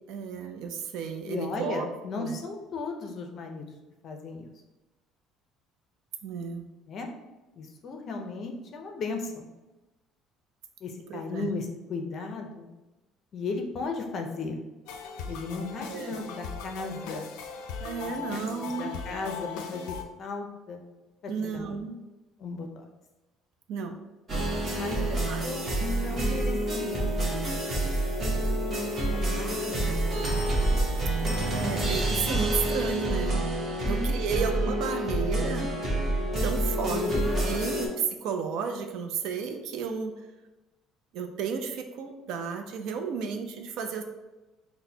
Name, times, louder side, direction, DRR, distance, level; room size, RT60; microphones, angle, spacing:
voice 1, 0.1-1.9 2.2-2.4 6.2-6.7 11.1-11.5 15.9-16.2 17.8-19.0 21.3-22.0 23.7-24.0 25.0-25.8 31.5-33.5 33.8-35.7 36.4-37.0 37.5-40.1 41.1-44.0, right 6 dB, 60° right, 5 dB, 0.4 m, -33 dB
voice 2, 1.3-3.7 4.0-4.5 6.9-7.1 7.6-9.5 10.8-12.7 13.3-14.6 15.3-17.3 18.0-20.8 21.2-21.8 22.4-22.8 24.7-25.2 25.4-27.4 29.0-30.2 33.8-34.2 36.9-37.2, left 3 dB, 35° left, 4 dB, 0.5 m, -36 dB
sound 1, 14.9-20.0, left 6 dB, 90° left, 0.4 m, -39 dB
sound 2, 24.3-37.9, right 1 dB, 25° right, 0.8 m, -28 dB
6.0 x 2.1 x 2.7 m, 1.1 s
cardioid pair, 170°, 0 cm